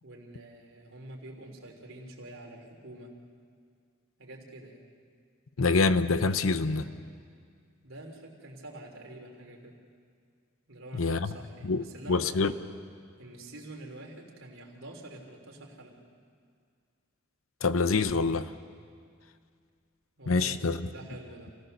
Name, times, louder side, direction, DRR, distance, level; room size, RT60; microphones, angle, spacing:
voice 1, 0.0-3.2 4.2-4.9 6.6-6.9 7.8-9.8 10.7-12.6 13.2-16.0 20.2-21.6, right 1 dB, 70° right, 0 dB, 3.3 m, -46 dB
voice 2, 5.6-6.9 10.9-11.3 11.6-12.5 17.6-18.5 20.3-20.9, left 3 dB, 75° left, 12 dB, 0.8 m, -26 dB
28.0 x 16.5 x 6.7 m, 2.1 s
head